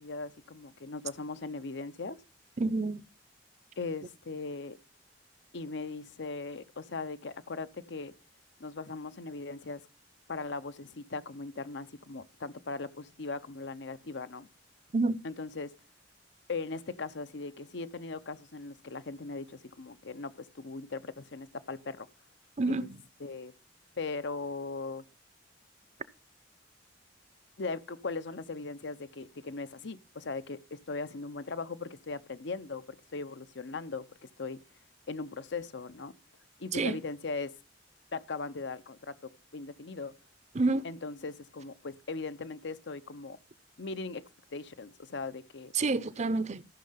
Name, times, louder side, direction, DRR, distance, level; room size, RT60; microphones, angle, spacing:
voice 1, 0.0-2.2 3.8-4.8 5.5-8.1 8.6-9.9 10.3-14.5 15.2-15.7 16.5-22.1 22.7-22.9 23.2-23.5 24.0-25.0 27.6-34.6 35.1-36.1 36.6-37.5 38.1-39.1 39.5-40.2 40.8-43.4 43.8-44.2 44.5-45.7, left 3 dB, 65° left, 0.8 m, -39 dB
voice 2, 2.6-3.0 14.9-15.2 22.6-23.0 36.7-37.0 40.5-40.9 45.7-46.6, right 3 dB, 40° right, 0.7 m, -28 dB
14.0 x 6.5 x 5.7 m
head